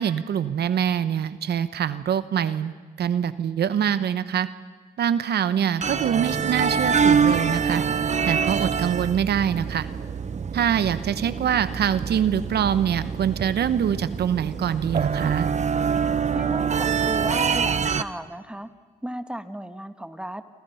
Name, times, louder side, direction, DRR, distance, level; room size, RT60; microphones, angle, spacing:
voice 1, 0.0-2.7 3.0-4.5 5.0-7.8 8.2-9.9 10.5-15.5, right 9 dB, 80° right, 13 dB, 1.0 m, -24 dB
sound 1, 5.8-18.0, right 6 dB, 45° right, 1.1 m, -25 dB
voice 2, 16.3-18.7 19.0-20.4, right 1 dB, 5° right, 9 dB, 1.6 m, -35 dB
29.0 x 25.5 x 5.7 m, 1.4 s
cardioid pair, 85°, 17 cm